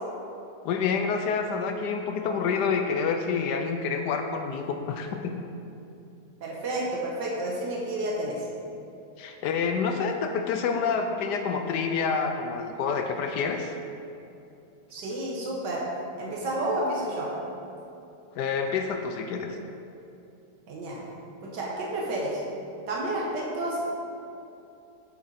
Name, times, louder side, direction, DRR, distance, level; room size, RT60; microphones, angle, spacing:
voice 1, 0.6-5.4 9.2-13.7 18.4-19.6, left 5 dB, 80° left, 5 dB, 1.2 m, -28 dB
voice 2, 6.4-8.4 14.9-15.8 16.2-17.3 20.7-21.0 21.4-22.4 22.9-23.9, right 1 dB, 90° right, -4 dB, 1.9 m, -30 dB
8.6 x 7.3 x 4.2 m, 2.7 s
omnidirectional pair, 1.8 m